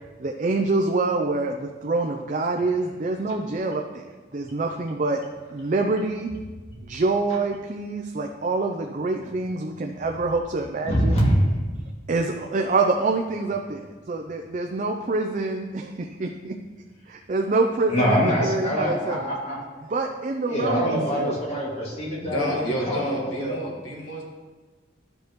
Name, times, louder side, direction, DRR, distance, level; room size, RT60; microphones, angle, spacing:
voice 1, 0.2-4.0 4.3-5.2 5.5-6.3 6.8-11.2 12.1-16.5 17.1-19.3 19.9-21.4, right 3 dB, 40° right, 2 dB, 0.4 m, -26 dB
voice 2, 10.8-11.3 17.9-19.6 20.4-23.6, equal, 30° left, -5 dB, 2.1 m, -24 dB
voice 3, 22.2-24.2, equal, 80° left, -2 dB, 1.6 m, -30 dB
12.0 x 5.3 x 3.0 m, 1.3 s
head